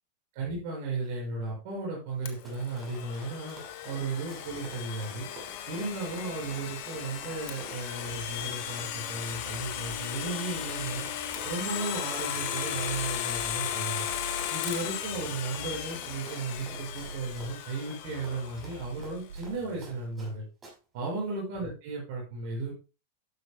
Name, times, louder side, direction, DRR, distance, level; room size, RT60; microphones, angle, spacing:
voice 1, 0.3-3.6 3.8-5.3 5.7-11.0 11.4-14.1 14.5-20.4 20.9-22.7, right 3 dB, 45° right, -3 dB, 6.1 m, -35 dB
Run, 2.2-20.3 20.6-20.7, right 2 dB, 20° right, 6.5 m, -49 dB
Domestic sounds home sounds, 2.3-19.0, left 10 dB, 45° left, 1.7 m, -36 dB
sound 1, 8.0-8.4 9.3-10.3 10.5-11.5 12.3-14.5 15.0-16.1 16.5-17.5 18.0-20.1, right 2 dB, 65° right, 5.9 m, -45 dB
13.0 x 11.0 x 2.2 m, 0.32 s
figure-of-eight pair, 90°, 0 cm